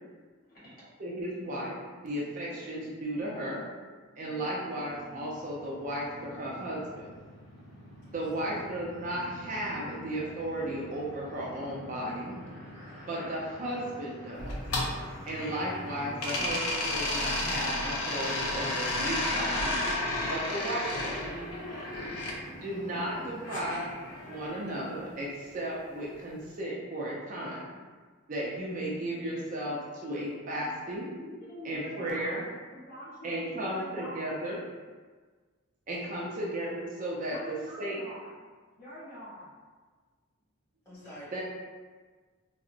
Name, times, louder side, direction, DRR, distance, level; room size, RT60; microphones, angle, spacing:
voice 1, 0.4-0.9 2.5-2.6 8.5-8.6 22.9-23.7 31.1-34.4 37.3-38.3 38.8-39.5, equal, 45° left, -8 dB, 0.9 m, -45 dB
voice 2, 1.0-3.7 4.2-7.2 8.1-12.4 13.1-14.6 15.3-19.8 20.3-21.3 22.6-23.8 24.3-27.7 28.3-31.1 31.6-32.4 33.2-34.6 35.9-38.0 41.3-41.4, right 1 dB, 35° right, -5 dB, 0.4 m, -35 dB
sound 1, 4.8-24.5, equal, 70° left, 0.9 m, -47 dB
sound 2, 14.4-15.8 16.2-22.4 23.4-24.6, left 1 dB, 85° left, 0.5 m, -32 dB
voice 3, 22.0-22.6 36.0-36.3 40.8-41.4, equal, 10° left, -12 dB, 1.2 m, -49 dB
3.7 x 2.0 x 2.5 m, 1.4 s
head